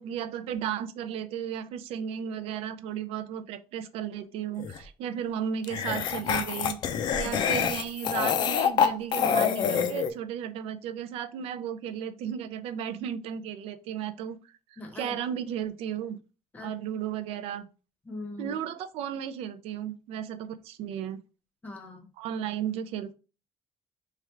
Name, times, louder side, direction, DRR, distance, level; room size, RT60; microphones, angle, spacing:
voice 1, 0.0-6.8 7.1-16.2 16.6-17.7 18.4-21.2 22.2-23.1, right 9 dB, 85° right, 0.4 m, -34 dB
sound 1, 4.6-4.8 5.6-10.1, left 8 dB, 50° left, 0.4 m, -26 dB
voice 2, 14.8-15.1 16.5-16.7 18.1-18.5 21.6-22.1, left 2 dB, 15° left, 0.7 m, -40 dB
3.2 x 2.4 x 4.4 m
cardioid pair, 175°, 10 cm